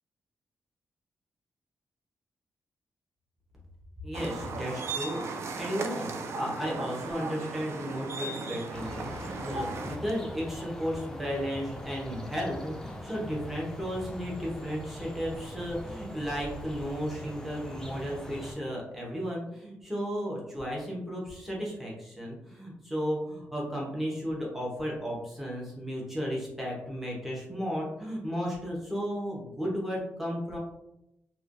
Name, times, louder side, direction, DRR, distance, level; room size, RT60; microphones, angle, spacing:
voice 1, 4.0-5.3 5.6-30.6, equal, 5° right, -4 dB, 0.8 m, -34 dB
sound 1, 4.1-10.0, right 3 dB, 65° right, 0.4 m, -36 dB
sound 2, 8.7-18.5, left 1 dB, 10° left, 0.4 m, -42 dB
3.1 x 2.2 x 2.5 m, 0.85 s
cardioid pair, 95°, 5 cm